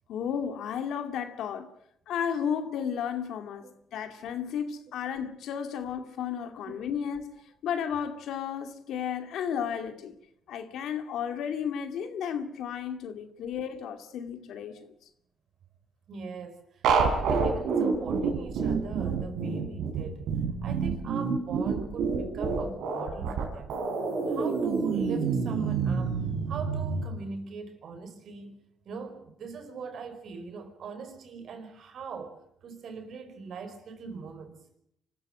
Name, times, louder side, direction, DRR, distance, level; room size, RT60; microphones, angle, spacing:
voice 1, 0.1-1.7 2.1-7.3 7.6-10.1 10.5-14.9, left 8 dB, 80° left, 2.4 m, -33 dB
voice 2, 16.1-20.2 20.6-23.7 24.3-26.2 26.5-28.6 28.8-34.6, right 5 dB, 65° right, 5.1 m, -41 dB
sound 1, 16.8-27.0, right 5 dB, 85° right, 5.1 m, -28 dB
25.5 x 14.5 x 9.0 m
cardioid pair, 90°, 0 cm